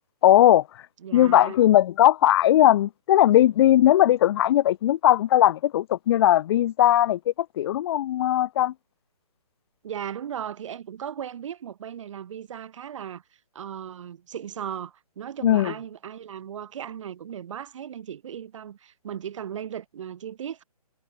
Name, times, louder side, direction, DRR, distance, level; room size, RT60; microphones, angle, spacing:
voice 1, 0.2-0.6 1.1-8.7 15.4-15.7, left 12 dB, 40° left, 1.7 m, -19 dB
voice 2, 1.0-1.6 9.8-13.2 13.5-20.6, right 9 dB, 50° right, 4.6 m, -36 dB
figure-of-eight pair, 140°, 20 cm